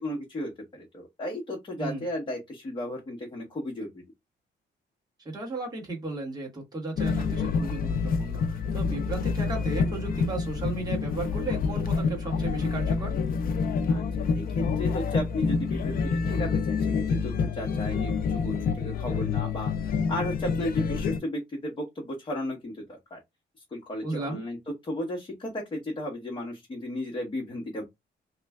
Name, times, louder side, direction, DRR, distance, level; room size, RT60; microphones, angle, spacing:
voice 1, 0.0-4.0 13.9-19.7 20.1-23.2 23.7-24.6 24.8-27.8, left 1 dB, 25° left, 1.0 m, -34 dB
voice 2, 5.2-13.1 24.0-24.4, right 3 dB, 20° right, 1.4 m, -34 dB
sound 1, 7.0-21.2, left 5 dB, 50° left, 0.5 m, -27 dB
3.1 x 2.4 x 3.4 m
wide cardioid pair, 175°, 19 cm